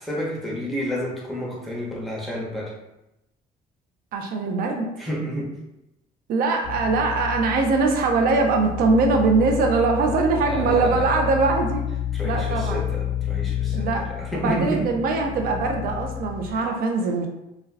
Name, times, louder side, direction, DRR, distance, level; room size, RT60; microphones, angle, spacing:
voice 1, 0.0-2.7 5.0-5.5 10.4-11.1 12.1-14.9, equal, ahead, -5 dB, 0.7 m, -30 dB
voice 2, 4.1-4.9 6.3-11.9 12.2-12.8 13.7-14.1 14.3-17.3, right 4 dB, 60° right, 3 dB, 0.5 m, -22 dB
sound 1, 6.6-16.6, left 10 dB, 30° left, 0.4 m, -30 dB
2.3 x 2.2 x 3.2 m, 0.91 s
cardioid pair, 110°, 17 cm